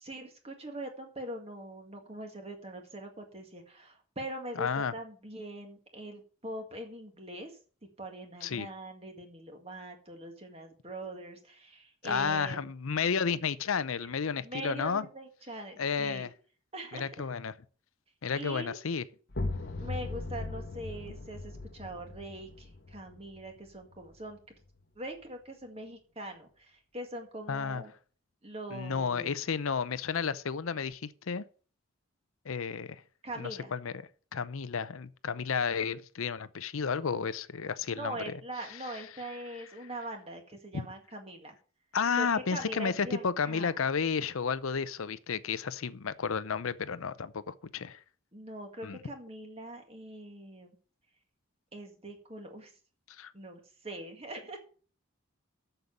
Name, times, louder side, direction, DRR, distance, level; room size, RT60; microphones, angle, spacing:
voice 1, 0.0-7.5 8.0-12.7 14.0-14.1 14.4-16.3 16.7-17.3 18.4-18.8 19.8-24.4 25.0-27.9 28.4-29.3 33.2-33.7 38.0-41.5 42.2-43.8 48.3-50.8 51.7-52.7 53.3-54.6, right 1 dB, 30° right, 1.9 m, -42 dB
voice 2, 4.6-4.9 8.4-8.7 12.0-15.1 15.8-16.3 16.9-17.5 18.2-19.0 27.5-27.8 28.7-31.4 32.5-33.0 33.4-34.0 34.3-38.3 38.7-39.1 40.7-40.9 41.9-48.0 48.8-49.0 53.1-53.3, left 6 dB, 80° left, 0.6 m, -32 dB
sound 1, 19.3-24.8, left 2 dB, 50° left, 1.0 m, -39 dB
7.9 x 6.9 x 7.2 m
head